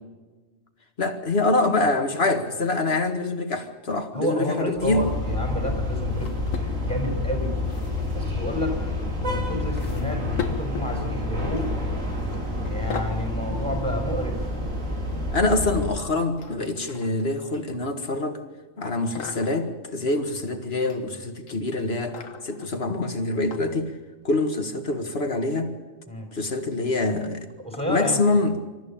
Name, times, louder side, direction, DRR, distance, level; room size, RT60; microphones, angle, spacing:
voice 1, 1.0-5.1 15.3-18.4 18.8-23.9 24.2-25.7 26.3-27.5 27.9-28.6, left 2 dB, 50° left, 7 dB, 2.0 m, -25 dB
voice 2, 4.1-7.6 8.1-8.8 9.1-11.8 12.6-14.5 26.1-26.3 27.6-28.2, equal, 5° left, 3 dB, 5.3 m, -30 dB
sound 1, 4.8-16.0, left 2 dB, 90° right, 4.4 m, -28 dB
sound 2, 6.1-7.1 7.5-8.2 9.0-9.2 9.8-10.9 11.6-11.9 12.2-12.4 12.7-13.2 14.5-15.3 16.4-17.9 18.9-19.7 20.5-21.0 21.4-22.7 23.5-23.6 24.2-24.3, left 6 dB, 90° left, 1.8 m, -39 dB
27.0 x 14.0 x 8.8 m, 1.3 s
omnidirectional pair, 1.3 m